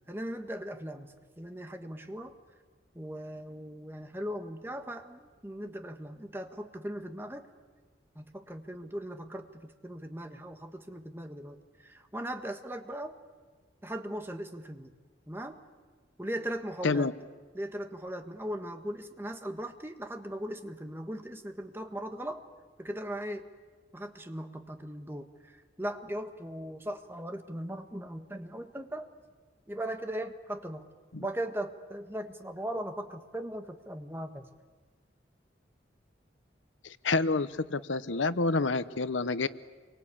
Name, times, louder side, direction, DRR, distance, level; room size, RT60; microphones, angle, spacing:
voice 1, 0.1-2.3 2.9-7.5 8.1-13.1 13.8-14.9 15.3-15.6 16.2-17.1 17.5-22.4 22.8-23.4 23.9-29.1 29.7-30.9 31.2-34.4, right 1 dB, 10° right, 6 dB, 1.5 m, -39 dB
voice 2, 36.8-39.5, left 3 dB, 90° left, 14 dB, 0.9 m, -28 dB
29.0 x 24.0 x 8.6 m, 1.5 s
head